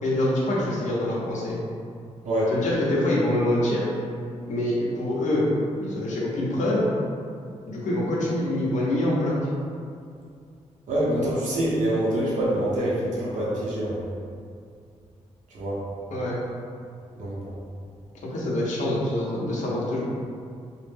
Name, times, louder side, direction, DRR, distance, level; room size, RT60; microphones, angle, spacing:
voice 1, 0.0-1.6 2.5-3.9 4.5-5.5 5.8-6.9 7.7-9.3 16.1-16.4 18.2-20.0, left 1 dB, 75° left, -5 dB, 0.7 m, -25 dB
voice 2, 10.9-14.0 15.5-15.8 17.2-17.5, right 1 dB, 80° right, -7 dB, 0.8 m, -25 dB
2.4 x 2.1 x 3.3 m, 2.3 s
cardioid pair, 90°, 13 cm